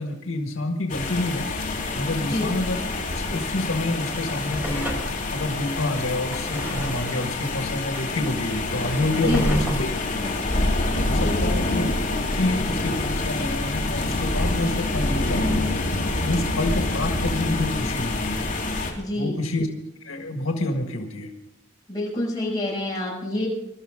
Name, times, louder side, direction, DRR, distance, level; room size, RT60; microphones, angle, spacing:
voice 1, 0.0-2.8 3.3-9.9 10.2-10.3 11.0-15.5 16.2-18.4 19.2-19.7 20.0-21.3, left 2 dB, 90° left, 4 dB, 1.7 m, -28 dB
sound 1, 0.9-18.9, left 2 dB, 40° left, 3.4 m, -26 dB
Drawer open or close, 4.0-11.4 11.9-12.0, equal, 10° right, 4.6 m, -34 dB
voice 2, 9.2-9.6 11.1-11.6 18.9-19.4 21.9-23.5, left 1 dB, 20° left, -5 dB, 6.8 m, -27 dB
23.0 x 13.0 x 3.7 m, 0.84 s
head